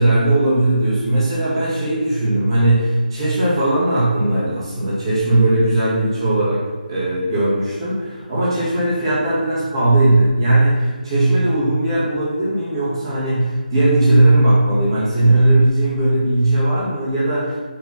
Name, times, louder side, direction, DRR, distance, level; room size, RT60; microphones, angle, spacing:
voice 1, 0.0-6.6 6.9-17.6, right 1 dB, 10° right, -16 dB, 2.2 m, -17 dB
9.0 x 4.8 x 6.2 m, 1.4 s
hypercardioid pair, 175°, 5 cm